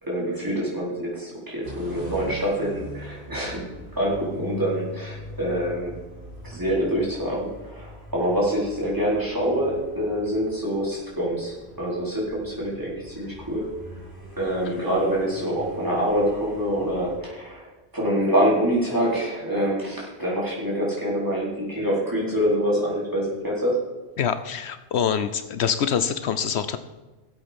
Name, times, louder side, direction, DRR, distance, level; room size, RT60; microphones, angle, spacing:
voice 1, 0.0-3.6 3.9-5.9 6.4-13.7 14.4-17.7 17.9-23.8, equal, 20° right, -6 dB, 4.4 m, -25 dB
sound 1, 1.6-17.2, left 1 dB, 50° right, 3.3 m, -42 dB
voice 2, 24.2-26.8, left 7 dB, 75° left, 11 dB, 0.9 m, -25 dB
17.5 x 7.9 x 5.3 m, 1.2 s
omnidirectional pair, 1.1 m